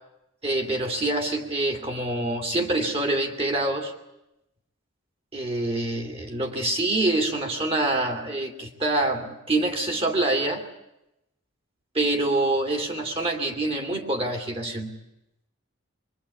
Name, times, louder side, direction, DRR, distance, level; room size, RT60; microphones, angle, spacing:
voice 1, 0.4-3.9 5.3-10.7 11.9-15.0, right 2 dB, 30° right, 5 dB, 2.6 m, -26 dB
24.0 x 23.0 x 8.5 m, 0.89 s
head